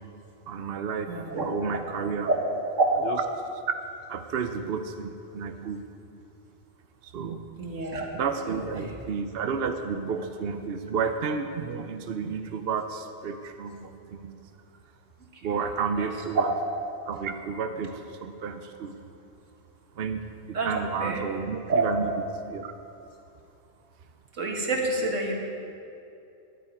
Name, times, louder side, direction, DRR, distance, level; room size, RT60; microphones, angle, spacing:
voice 1, 0.5-1.1 1.4-2.3 3.0-3.2 4.1-5.8 7.0-7.4 8.1-14.4 15.4-16.5 17.1-19.0 20.0-22.7, right 5 dB, 55° right, 7 dB, 0.8 m, -31 dB
voice 2, 1.1-1.5 2.3-2.4 7.6-8.1 8.8-8.9 20.5-20.7 21.0-21.2 21.7-21.9 24.4-25.3, right 3 dB, 75° right, 1 dB, 2.0 m, -27 dB
10.5 x 9.3 x 8.8 m, 2.7 s
omnidirectional pair, 1.3 m